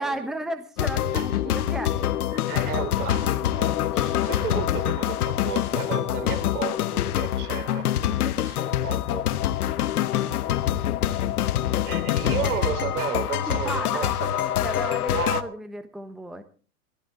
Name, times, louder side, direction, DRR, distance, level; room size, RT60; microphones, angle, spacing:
voice 1, 0.0-1.9 10.1-11.0 13.4-14.1 14.6-16.4, right 1 dB, ahead, 9 dB, 1.1 m, -34 dB
sound 1, 0.8-15.4, left 12 dB, 75° left, 1.1 m, -25 dB
voice 2, 1.1-1.6 2.3-9.3 11.8-14.5 15.1-15.5, right 8 dB, 75° right, 6 dB, 3.7 m, -33 dB
19.0 x 13.5 x 3.8 m, 0.39 s
hypercardioid pair, 120°, 46 cm